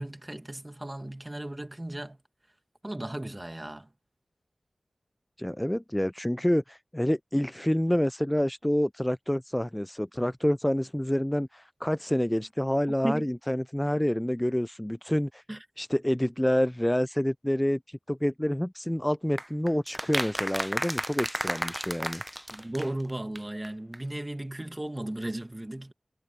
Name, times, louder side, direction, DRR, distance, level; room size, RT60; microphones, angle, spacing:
voice 1, 0.0-2.2 2.8-3.9 13.0-13.3 15.5-15.6 22.5-25.9, right 1 dB, 25° right, 2.0 m, -35 dB
voice 2, 5.4-15.4 15.8-22.2, equal, 10° left, 0.3 m, -28 dB
sound 1, 19.4-23.1 23.4-23.5 23.6-23.7 23.9-24.0, equal, 10° right, 0.8 m, -33 dB
cardioid pair, 45°, 0 cm